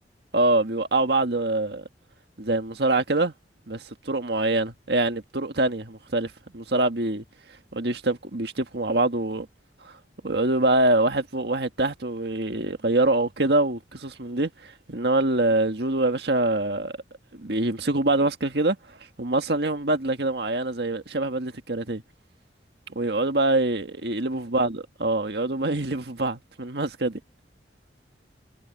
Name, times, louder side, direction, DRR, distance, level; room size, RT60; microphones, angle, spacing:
voice 1, 0.3-1.8 2.4-3.3 3.7-7.2 7.7-9.5 9.8-9.9 10.2-17.0 17.3-18.8 19.2-22.0 22.9-27.2, right 2 dB, 65° right, 1.8 m, -25 dB
head